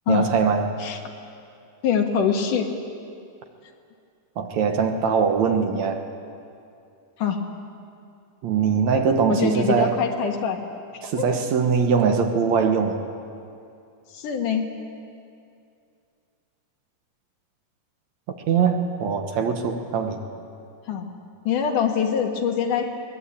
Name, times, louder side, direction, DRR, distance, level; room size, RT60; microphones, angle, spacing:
voice 1, 0.1-0.7 4.4-6.0 8.4-10.0 11.0-13.0 18.5-20.2, right 6 dB, 65° right, 5 dB, 2.3 m, -22 dB
voice 2, 1.8-2.7 7.2-7.4 9.3-10.6 11.1-11.4 14.1-14.7 20.9-21.1 21.4-22.9, left 7 dB, 70° left, 4 dB, 3.1 m, -23 dB
22.5 x 19.0 x 8.7 m, 2.5 s
omnidirectional pair, 3.8 m